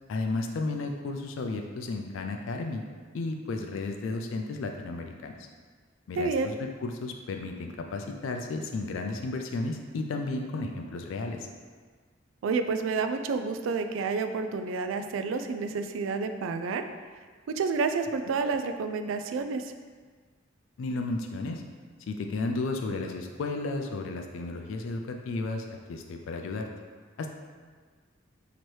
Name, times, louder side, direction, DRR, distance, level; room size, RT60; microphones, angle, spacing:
voice 1, 0.1-2.8 3.1-5.4 6.1-11.5 20.8-21.6 22.1-26.7 27.2-27.3, left 3 dB, 80° left, 4 dB, 0.3 m, -33 dB
voice 2, 6.2-6.5 12.4-16.9 17.5-19.7, right 4 dB, 90° right, 8 dB, 0.3 m, -29 dB
3.1 x 2.9 x 4.4 m, 1.6 s
head